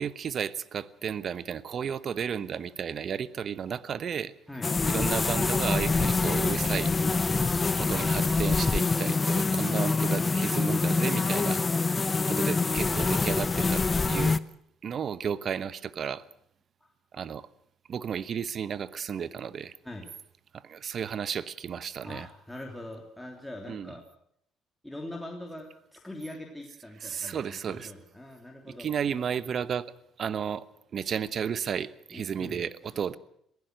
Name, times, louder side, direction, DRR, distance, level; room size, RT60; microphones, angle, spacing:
voice 1, 0.0-4.3 4.9-7.0 7.8-11.6 12.2-14.4 14.8-16.2 17.1-17.5 17.9-19.7 20.5-22.3 23.7-23.9 27.0-27.9 28.7-29.9 30.2-30.6 30.9-33.2, right 7 dB, 50° right, 16 dB, 1.0 m, -33 dB
sound 1, 4.6-14.4, left 4 dB, 25° left, 0.8 m, -25 dB
voice 2, 7.8-8.1 16.8-16.9 19.8-20.1 22.0-24.0 24.8-28.9 32.1-32.6, left 1 dB, 5° left, 1 dB, 3.0 m, -42 dB
22.5 x 15.5 x 7.9 m, 0.71 s
cardioid pair, 105°, 0 cm